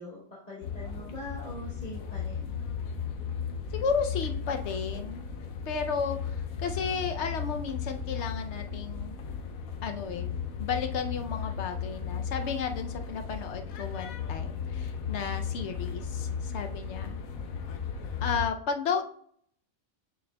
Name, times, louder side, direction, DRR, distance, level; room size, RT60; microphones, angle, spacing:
voice 1, 0.0-2.5 17.1-17.5, left 1 dB, 30° left, -6 dB, 1.2 m, -43 dB
sound 1, 0.6-18.5, left 6 dB, 85° left, 1.2 m, -35 dB
voice 2, 3.7-5.2 5.7-9.2 9.8-17.1 18.2-19.0, left 6 dB, 65° left, 6 dB, 0.8 m, -33 dB
6.6 x 6.5 x 2.2 m, 0.62 s
omnidirectional pair, 1.4 m